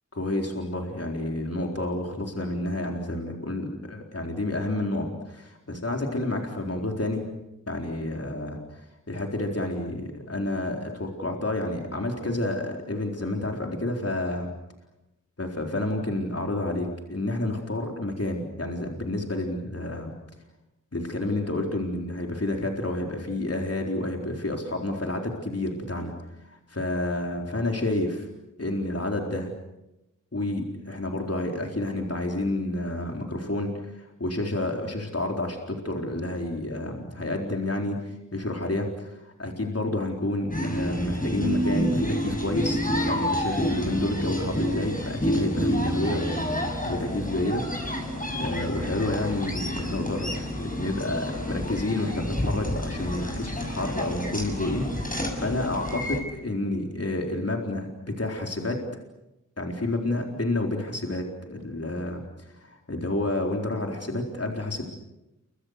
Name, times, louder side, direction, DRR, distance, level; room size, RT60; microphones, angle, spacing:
voice 1, 0.1-7.3 7.7-14.5 15.4-20.2 20.9-26.1 26.4-28.3 28.6-29.5 30.3-47.6 48.3-58.8 59.6-64.8, left 1 dB, 50° left, 2 dB, 4.2 m, -30 dB
sound 1, 40.5-56.2, equal, 25° left, 6.8 m, -29 dB
29.5 x 24.5 x 6.7 m, 0.94 s
wide cardioid pair, 45°, 31 cm